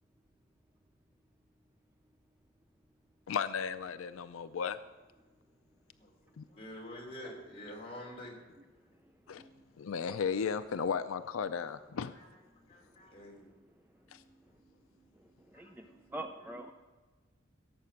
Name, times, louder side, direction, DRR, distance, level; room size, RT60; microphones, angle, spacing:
voice 1, 3.3-4.8 6.4-6.5 9.3-9.4 9.8-12.1 14.1-14.2, left 6 dB, 85° left, 11 dB, 0.4 m, -35 dB
voice 2, 6.5-8.4 12.1-12.3 12.7-13.4 15.5-15.9 16.4-16.5, left 1 dB, 30° left, -2 dB, 3.4 m, -47 dB
voice 3, 15.5-16.7, right 1 dB, 10° right, 5 dB, 0.5 m, -44 dB
16.5 x 7.4 x 5.8 m, 1.3 s
head